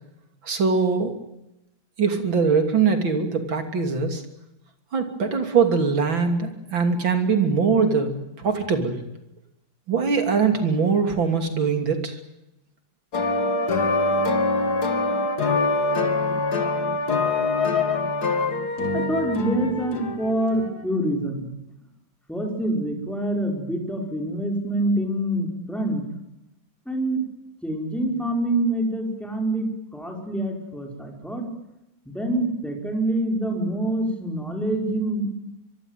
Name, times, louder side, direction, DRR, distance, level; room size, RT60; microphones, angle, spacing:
voice 1, 0.4-1.1 2.0-4.2 4.9-8.1 8.4-9.0 9.9-12.2, right 5 dB, 90° right, 6 dB, 3.7 m, -22 dB
sound 1, 13.1-20.7, left 3 dB, 55° left, 2.7 m, -24 dB
voice 2, 18.9-21.5 22.3-26.0 26.9-27.2 27.6-31.5 32.1-35.3, right 1 dB, ahead, 2 dB, 5.3 m, -26 dB
24.0 x 23.5 x 9.3 m, 0.90 s
omnidirectional pair, 2.1 m